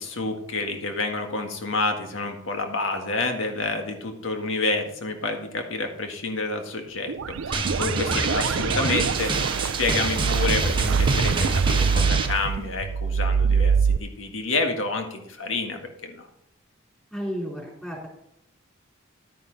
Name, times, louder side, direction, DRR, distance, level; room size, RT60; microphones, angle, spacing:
voice 1, 0.0-7.1 7.5-9.5 9.8-16.3, left 3 dB, 70° left, 4 dB, 1.8 m, -29 dB
sound 1, 7.1-14.0, right 6 dB, 75° right, 0.4 m, -24 dB
Drum, 7.5-12.3, right 3 dB, 25° right, 1.2 m, -27 dB
voice 2, 17.1-18.1, equal, 5° left, -2 dB, 3.9 m, -32 dB
11.0 x 9.5 x 4.0 m, 0.82 s
head